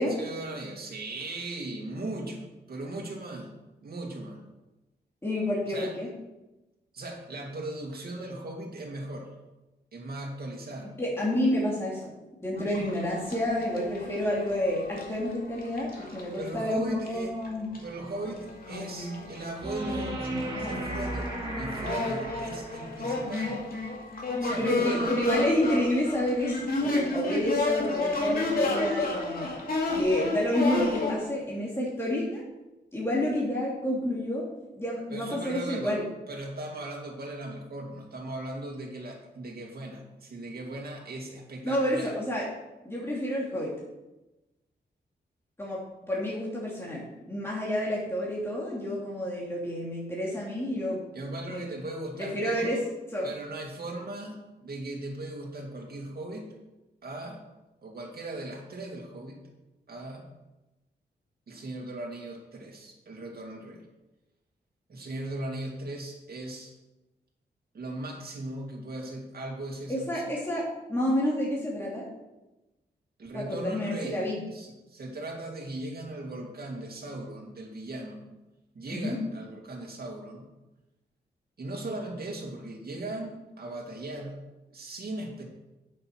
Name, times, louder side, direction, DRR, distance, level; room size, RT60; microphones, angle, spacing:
voice 1, 0.1-3.5 3.8-4.4 5.7-5.9 6.9-9.3 9.9-11.0 16.3-17.3 17.8-20.2 20.6-23.6 24.4-25.1 35.1-36.0 36.3-42.1 51.1-52.8 53.2-56.5 57.0-57.4 57.8-59.4 59.9-60.3 61.5-63.8 64.9-66.7 67.7-70.2 73.2-74.2 74.5-78.2 78.7-80.4 81.6-84.4 84.7-85.4, right 2 dB, 55° right, 1 dB, 2.3 m, -38 dB
voice 2, 5.2-6.1 11.0-12.1 12.4-17.7 24.6-29.5 29.9-32.4 32.9-34.5 34.8-36.0 41.6-42.5 42.8-43.7 45.6-45.8 46.1-51.0 51.5-51.6 52.2-52.8 53.1-53.3 69.9-70.6 70.9-72.0 73.3-74.4 78.9-79.2, left 1 dB, 15° left, -5 dB, 2.8 m, -29 dB
sound 1, 12.6-16.5 17.1-17.2 17.4-31.1, left 2 dB, 50° left, 2.6 m, -32 dB
sound 2, 19.6-23.0 25.6-25.7, right 1 dB, 30° right, 3.1 m, -34 dB
8.0 x 6.7 x 6.1 m, 1.0 s
cardioid pair, 75°, 18 cm